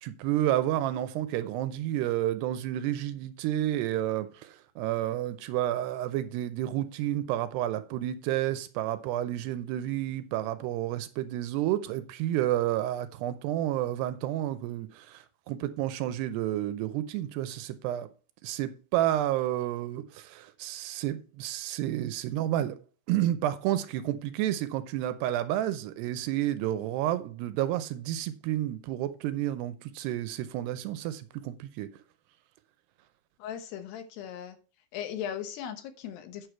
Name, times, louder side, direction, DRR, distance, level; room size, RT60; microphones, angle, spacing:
voice 1, 0.0-18.1 18.4-22.8 23.1-31.9, right 13 dB, 80° right, 2.6 m, -30 dB
voice 2, 33.4-34.6 34.9-36.5, left 9 dB, 75° left, 3.1 m, -38 dB
9.5 x 6.4 x 4.5 m
omnidirectional pair, 5.0 m